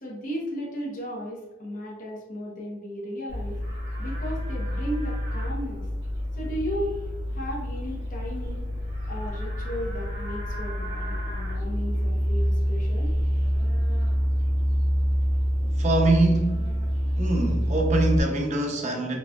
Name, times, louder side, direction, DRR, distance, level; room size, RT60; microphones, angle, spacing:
voice 1, 0.0-3.6 4.0-5.8 6.3-6.9 7.3-8.7 9.1-13.1, equal, 45° left, -3 dB, 0.8 m, -35 dB
Livestock farm animals working animals, 3.3-18.2, equal, 70° right, 1.5 m, -27 dB
voice 2, 15.6-16.7 17.2-19.2, right 2 dB, 40° right, 2 dB, 0.6 m, -24 dB
4.0 x 2.3 x 2.3 m, 1.0 s
head